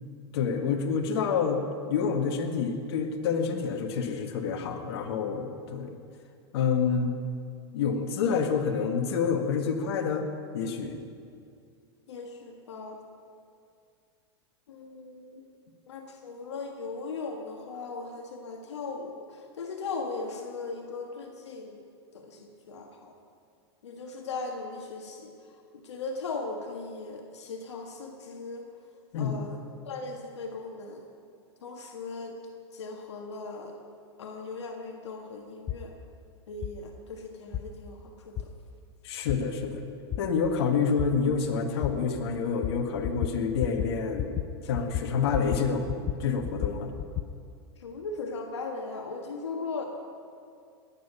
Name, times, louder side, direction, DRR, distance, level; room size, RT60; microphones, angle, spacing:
voice 1, 0.3-1.6 1.9-6.0 6.5-7.1 7.7-11.0 29.1-29.4 39.0-39.8 40.2-44.3 44.6-46.9, left 6 dB, 65° left, 3 dB, 1.7 m, -28 dB
voice 2, 12.1-13.0 14.7-15.4 15.9-21.8 22.1-23.1 23.8-25.3 25.8-28.7 29.2-31.0 31.6-32.3 32.7-33.7 34.2-35.9 36.5-38.5 47.8-49.8, left 3 dB, 80° left, 2 dB, 1.5 m, -38 dB
sound 1, 35.7-35.8 36.6-36.7 37.5-37.6 38.4-38.5 39.3-39.4 40.1-40.2 41.0-41.1 41.8-41.9 42.6-42.8 43.0-43.3 43.6-43.9 44.2-44.5 44.7-45.6 45.9-47.3, left 12 dB, 30° left, 0.6 m, -31 dB
20.5 x 9.0 x 5.7 m, 2.3 s
hypercardioid pair, 105°, 14 cm